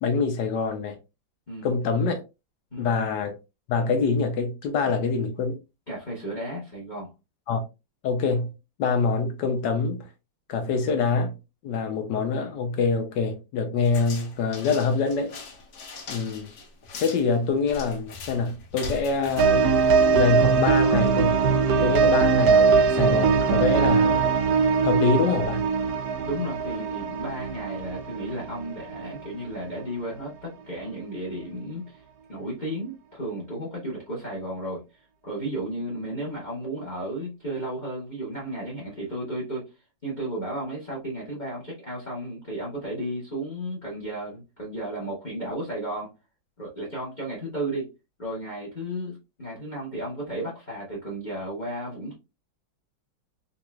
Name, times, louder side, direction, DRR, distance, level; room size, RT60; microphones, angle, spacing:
voice 1, 0.0-1.0 1.6-2.2 2.8-3.4 3.7-5.5 7.5-7.6 8.0-8.5 8.8-10.1 10.5-11.4 11.6-15.3 16.1-16.5 17.0-19.7 20.1-21.4 21.8-24.3 24.8-25.7, left 4 dB, 75° left, 1.1 m, -25 dB
voice 2, 5.9-7.1 26.2-32.0 32.3-39.7 40.0-46.1 46.6-47.9 48.2-52.2, right 1 dB, 30° left, 1.1 m, -33 dB
sound 1, 13.8-20.4, left 3 dB, 55° left, 1.0 m, -41 dB
sound 2, 19.4-29.3 29.5-29.6, right 5 dB, 65° right, 1.1 m, -21 dB
4.0 x 2.8 x 2.2 m
omnidirectional pair, 2.2 m